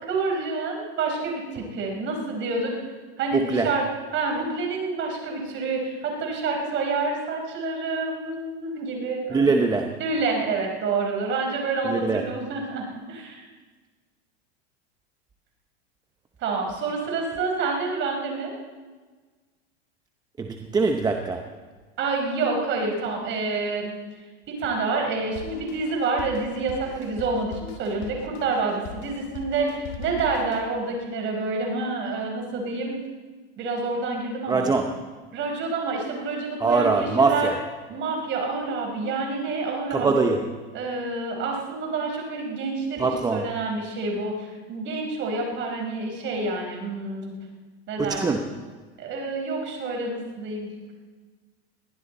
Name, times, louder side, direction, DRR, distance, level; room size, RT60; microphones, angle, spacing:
voice 1, 0.0-2.8 3.2-3.8 4.1-9.6 10.0-13.4 16.4-18.5 22.0-23.9 24.5-33.0 33.6-34.7 35.3-37.5 37.9-40.3 40.7-43.1 43.3-47.3 47.9-48.4 49.0-50.7, right 3 dB, 35° right, 2 dB, 4.7 m, -28 dB
voice 2, 3.3-3.7 9.3-10.0 11.8-12.3 20.4-21.5 34.5-35.1 36.6-37.6 39.9-40.5 43.0-43.5 48.0-48.5, right 4 dB, 10° right, 4 dB, 0.7 m, -23 dB
Drum kit, 25.4-30.7, left 6 dB, 50° left, 2.1 m, -41 dB
21.5 x 15.5 x 4.3 m, 1.4 s
supercardioid pair, 135°, 33 cm